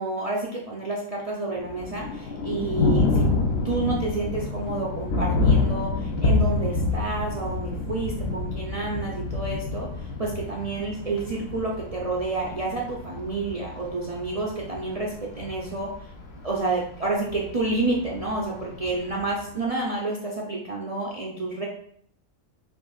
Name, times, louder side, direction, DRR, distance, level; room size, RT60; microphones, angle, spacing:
voice 1, 0.0-3.3 3.6-15.9 16.4-21.6, right 2 dB, 50° right, -4 dB, 0.4 m, -29 dB
Thunder, 1.6-19.5, left 3 dB, 60° left, 0.7 m, -28 dB
6.2 x 2.6 x 2.3 m, 0.65 s
omnidirectional pair, 1.5 m